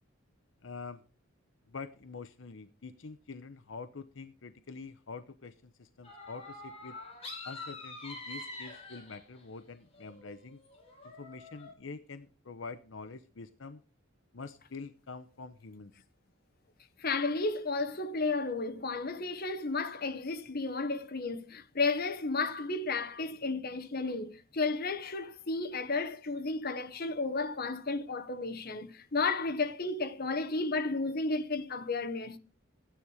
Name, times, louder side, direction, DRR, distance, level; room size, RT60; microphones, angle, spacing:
voice 1, 0.6-1.0 1.7-7.0 7.4-10.6 11.0-13.8 14.3-15.9, left 4 dB, 70° left, 0.8 m, -46 dB
sound 1, 6.0-9.4 9.9-11.7, left 2 dB, 30° left, 4.3 m, -46 dB
voice 2, 17.0-32.4, left 3 dB, 50° left, 1.2 m, -33 dB
14.0 x 10.0 x 4.9 m
head